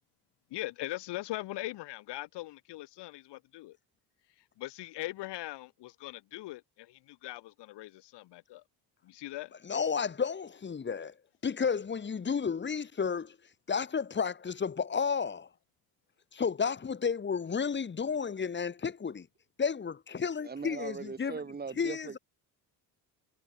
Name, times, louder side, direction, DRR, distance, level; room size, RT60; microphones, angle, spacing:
voice 1, 0.5-3.8 4.6-8.6 9.0-9.5, left 17 dB, 85° left, 7.3 m, -41 dB
voice 2, 9.6-11.1 11.4-13.3 13.7-15.5 16.3-19.3 19.6-21.4 21.8-22.2, left 6 dB, 25° left, 1.5 m, -32 dB
voice 3, 20.4-22.2, right 5 dB, 25° right, 2.1 m, -40 dB
cardioid pair, 110°, 40 cm